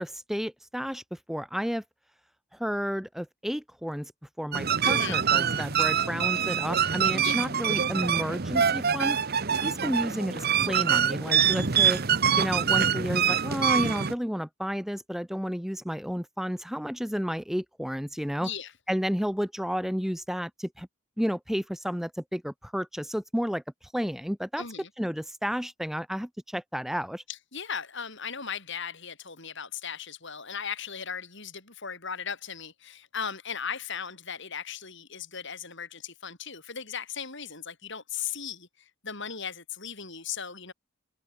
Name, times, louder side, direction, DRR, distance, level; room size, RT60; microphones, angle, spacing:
voice 1, 0.0-1.8 2.5-4.1 4.4-12.0 12.4-18.5 18.9-20.9 21.2-24.6 25.0-27.2, equal, ahead, 1.4 m, -31 dB
sound 1, 4.5-14.1, right 7 dB, 45° right, 1.0 m, -25 dB
voice 2, 4.8-5.2 7.2-7.4 18.4-18.7 24.6-24.9 27.3-40.7, left 7 dB, 55° left, 6.5 m, -37 dB
head